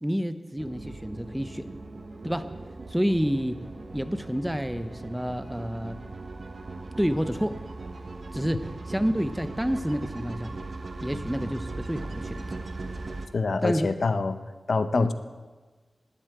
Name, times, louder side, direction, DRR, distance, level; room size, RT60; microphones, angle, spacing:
voice 1, 0.0-1.7 2.2-2.5 2.9-3.6 3.9-6.0 7.0-7.6 8.3-10.5 11.0-12.5 13.6-13.9 14.9-15.1, equal, 5° right, 10 dB, 0.7 m, -29 dB
sound 1, 0.6-13.3, right 3 dB, 55° right, 1.0 m, -39 dB
voice 2, 13.3-14.4 14.7-15.1, left 4 dB, 70° left, 11 dB, 0.6 m, -25 dB
11.5 x 8.0 x 8.9 m, 1.3 s
wide cardioid pair, 95°, 0 cm